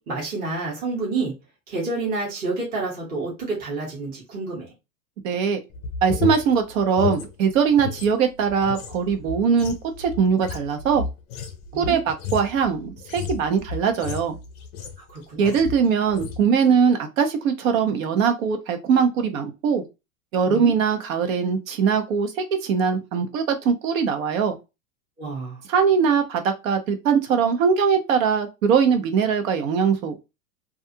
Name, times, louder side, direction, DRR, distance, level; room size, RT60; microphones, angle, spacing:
voice 1, 0.0-1.3 1.7-4.7 11.7-12.0 15.1-15.6 20.5-20.7 25.2-25.6, right 3 dB, 20° right, 0.9 m, -29 dB
voice 2, 5.2-5.6 6.0-11.0 11.7-14.4 15.4-19.8 20.3-24.5 25.7-30.2, right 6 dB, 70° right, 0.9 m, -21 dB
sound 1, 5.7-8.1 8.4-15.1 15.4-15.8 16.1-16.4, left 6 dB, 30° left, 0.5 m, -32 dB
2.5 x 2.3 x 2.7 m
supercardioid pair, 150°, 42 cm